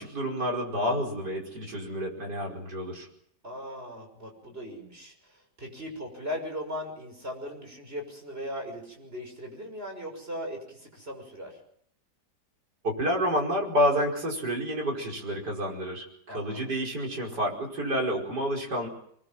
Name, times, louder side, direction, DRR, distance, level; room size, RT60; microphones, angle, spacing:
voice 1, 0.0-3.1 12.8-18.9, equal, 75° right, -1 dB, 5.8 m, -29 dB
voice 2, 3.4-11.6 16.3-16.7, equal, 35° right, 3 dB, 6.5 m, -38 dB
24.5 x 21.0 x 7.7 m, 0.69 s
omnidirectional pair, 1.8 m